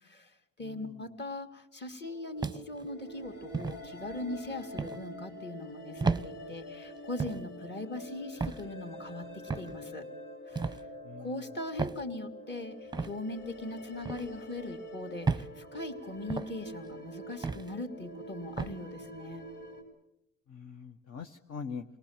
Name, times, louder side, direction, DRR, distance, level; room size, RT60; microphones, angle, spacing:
voice 1, 0.0-10.1 10.5-10.8 11.2-19.5, left 2 dB, 35° left, 5 dB, 2.8 m, -40 dB
voice 2, 0.6-0.9 11.0-11.4 20.5-21.8, left 5 dB, 55° left, 4 dB, 1.3 m, -43 dB
sound 1, 2.1-19.8, equal, 80° left, 6.3 m, -46 dB
sound 2, 2.4-2.9 3.5-3.8 4.8-5.0 6.0-6.3 7.2-7.4 8.4-8.7 9.5-9.8 10.6-10.8 11.8-12.0 12.9-13.1 14.1-14.3 15.3-15.5 16.3-16.5 17.4-17.7 18.6-18.8, right 4 dB, 15° right, 0.8 m, -32 dB
28.0 x 19.0 x 7.4 m, 0.81 s
cardioid pair, 90°, 30 cm